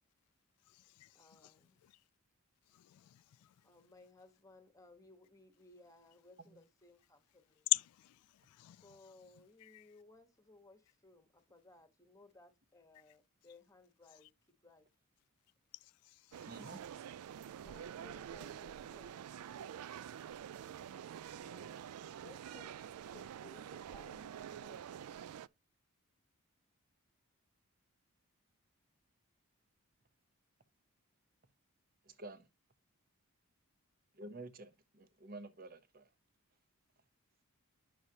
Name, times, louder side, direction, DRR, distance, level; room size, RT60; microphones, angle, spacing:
voice 1, 0.6-2.0 2.7-3.7 7.7-9.3 9.6-9.9 14.1-14.3 15.7-16.8, left 20 dB, 85° left, 0.3 m, -42 dB
voice 2, 1.1-1.8 3.6-7.7 8.8-14.9 16.3-16.5 17.6-19.3 19.6-20.0 21.4-22.8 23.1-24.8, left 2 dB, 15° left, 1.1 m, -61 dB
sound 1, 16.3-25.5, right 9 dB, 80° right, 0.3 m, -47 dB
voice 3, 16.4-16.8 32.0-32.5 34.1-36.1, right 2 dB, 40° right, 0.7 m, -50 dB
9.1 x 6.4 x 2.8 m
head